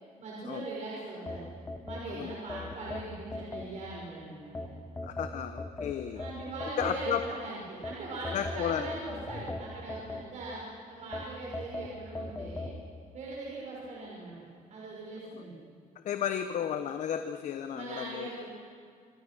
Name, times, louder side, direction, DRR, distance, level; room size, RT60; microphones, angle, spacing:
voice 1, 0.2-1.5 1.8-4.7 6.1-10.6 10.9-12.7 13.1-15.6 17.7-18.5, right 2 dB, 55° right, -4 dB, 6.2 m, -40 dB
sound 1, 1.3-4.0 4.5-7.3 7.8-10.6 11.1-12.8, left 2 dB, 15° left, 1.6 m, -39 dB
voice 2, 5.0-6.2 6.8-7.2 8.3-8.9 15.3-15.4 16.0-18.3, left 9 dB, 60° left, 9 dB, 1.1 m, -33 dB
27.0 x 24.5 x 6.3 m, 2.3 s
cardioid pair, 175°, 14 cm